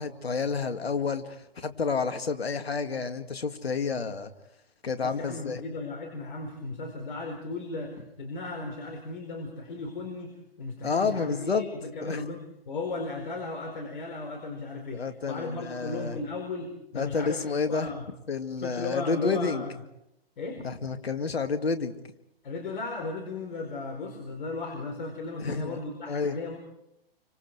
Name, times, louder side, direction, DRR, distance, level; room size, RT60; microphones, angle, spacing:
voice 1, 0.0-4.3 4.8-5.6 10.8-11.7 12.0-12.2 14.9-16.2 17.0-17.9 18.3-19.6 20.6-21.9 25.4-25.8 26.1-26.4, left 5 dB, 80° left, 8 dB, 2.1 m, -30 dB
voice 2, 5.0-18.0 18.6-19.7 20.4-20.6 22.4-26.6, left 3 dB, 55° left, 2 dB, 4.6 m, -36 dB
29.5 x 25.5 x 4.7 m, 0.82 s
hypercardioid pair, 135°, 30 cm